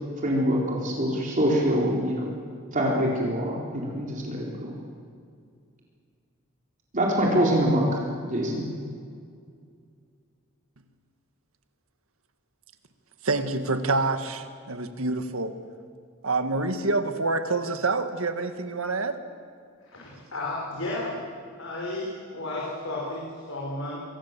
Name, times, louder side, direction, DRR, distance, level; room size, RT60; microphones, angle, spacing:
voice 1, 0.2-2.2 2.7-4.7 6.9-7.8 8.2-8.7, equal, 40° right, -3 dB, 4.3 m, -24 dB
voice 2, 13.2-15.5 16.2-19.2, right 3 dB, 80° right, 8 dB, 1.9 m, -27 dB
voice 3, 19.9-21.2 21.6-24.0, left 2 dB, 70° left, -4 dB, 5.5 m, -33 dB
27.5 x 23.5 x 7.6 m, 2.2 s
head